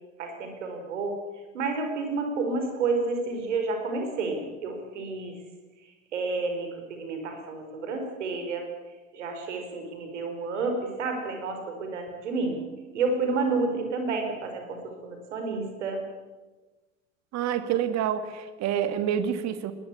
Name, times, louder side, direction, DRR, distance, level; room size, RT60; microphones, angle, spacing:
voice 1, 0.2-1.2 1.5-5.3 6.1-8.7 9.1-12.6 12.9-16.0, right 3 dB, 70° right, 5 dB, 4.6 m, -30 dB
voice 2, 17.3-19.7, right 9 dB, 45° right, 11 dB, 2.2 m, -27 dB
21.5 x 19.0 x 8.5 m, 1.2 s
figure-of-eight pair, 70°, 37 cm